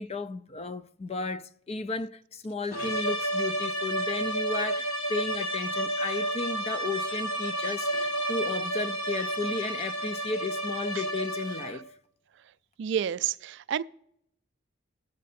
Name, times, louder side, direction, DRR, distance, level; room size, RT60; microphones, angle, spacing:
voice 1, 0.0-11.9, left 3 dB, 30° left, 0.4 m, -34 dB
sound 1, 2.7-11.9, right 1 dB, 85° left, 1.3 m, -31 dB
voice 2, 12.8-13.8, right 9 dB, 60° right, 0.3 m, -29 dB
16.0 x 6.5 x 4.2 m
head